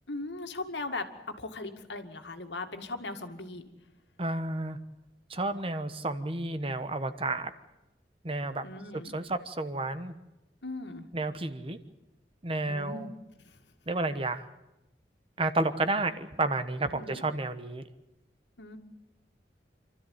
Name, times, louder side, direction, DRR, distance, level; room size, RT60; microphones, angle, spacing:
voice 1, 0.1-3.6 8.6-9.2 10.6-11.1 12.7-13.1 13.4-13.6 16.9-17.3 18.6-18.8, left 2 dB, 75° left, 6 dB, 2.2 m, -39 dB
voice 2, 4.2-4.8 5.3-7.5 8.2-8.6 8.9-10.1 11.1-11.8 12.4-13.1 13.9-14.5 15.4-17.8, right 2 dB, 30° right, 11 dB, 1.1 m, -31 dB
28.0 x 13.0 x 9.5 m, 0.95 s
head